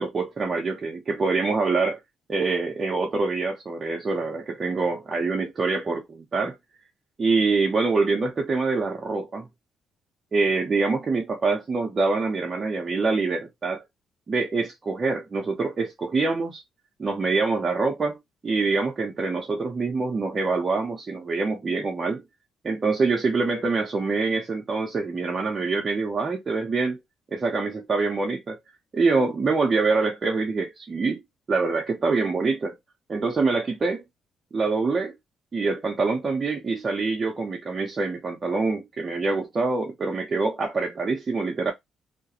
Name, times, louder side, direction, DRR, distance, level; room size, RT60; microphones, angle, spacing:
voice 1, 0.0-2.0 2.3-6.6 7.2-9.5 10.3-13.8 14.3-16.6 17.0-18.2 18.4-22.2 22.6-27.0 27.3-28.6 28.9-31.2 31.5-32.8 33.1-34.0 34.5-35.1 35.5-41.7, right 4 dB, 35° right, 0.6 m, -25 dB
2.4 x 2.2 x 2.8 m
cardioid pair, 90°, 0 cm